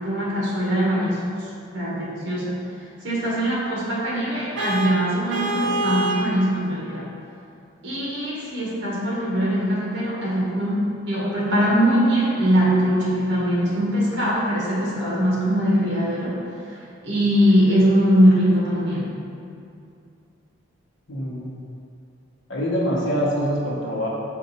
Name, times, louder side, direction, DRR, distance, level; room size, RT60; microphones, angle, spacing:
voice 1, 0.0-1.5 1.7-2.6 3.0-7.1 7.8-16.4 16.7-16.8 17.0-19.2, equal, 60° right, -6 dB, 1.3 m, -21 dB
Vehicle horn car horn honking, 4.6-6.3, right 2 dB, 80° right, 0.5 m, -25 dB
voice 2, 21.1-21.6 22.5-24.1, equal, 70° left, -5 dB, 0.9 m, -24 dB
5.2 x 2.5 x 4.0 m, 2.5 s
head